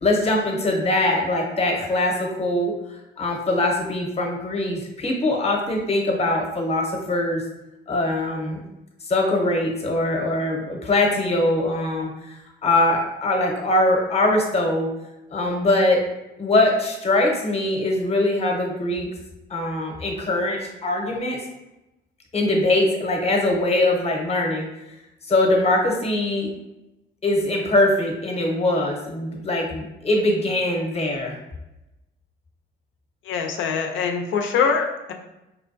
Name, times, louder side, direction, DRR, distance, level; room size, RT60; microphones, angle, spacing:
voice 1, 0.0-2.7 3.2-7.4 7.9-8.6 9.1-12.3 12.6-14.9 15.3-16.0 16.4-19.1 19.5-21.4 22.3-24.7 25.3-26.5 27.2-31.4, left 1 dB, 30° left, 1 dB, 0.8 m, -22 dB
voice 2, 33.2-35.1, left 6 dB, 75° left, 4 dB, 0.5 m, -23 dB
4.3 x 2.2 x 2.5 m, 0.95 s
cardioid pair, 90°, 20 cm